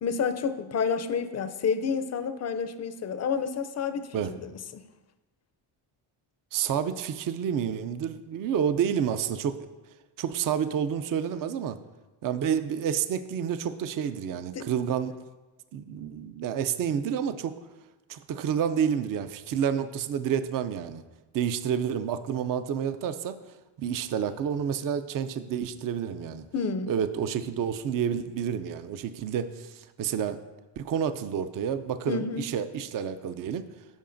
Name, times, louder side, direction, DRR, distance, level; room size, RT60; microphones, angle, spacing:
voice 1, 0.0-4.8 14.5-14.7 26.5-26.9 32.1-32.5, left 6 dB, 35° left, 11 dB, 0.4 m, -30 dB
voice 2, 6.5-9.7 10.2-11.8 12.2-15.1 15.7-17.6 18.1-21.0 21.3-23.4 23.8-26.4 26.9-30.4 30.8-33.7, right 8 dB, 45° right, 11 dB, 0.5 m, -29 dB
12.5 x 4.9 x 2.6 m, 1.1 s
cardioid pair, 100°, 49 cm